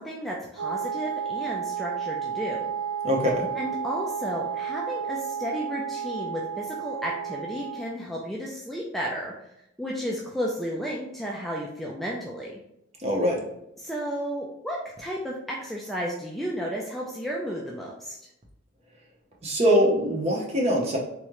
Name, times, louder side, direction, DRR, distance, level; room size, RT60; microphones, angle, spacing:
voice 1, 0.0-2.7 3.6-9.3 9.8-12.5 13.8-18.2, equal, ahead, -4 dB, 0.3 m, -33 dB
Wind instrument woodwind instrument, 0.6-8.0, right 7 dB, 70° right, 0.4 m, -32 dB
voice 2, 3.0-3.5 13.0-13.4 19.4-21.0, equal, 35° right, -1 dB, 0.8 m, -23 dB
3.6 x 3.1 x 2.9 m, 0.81 s
head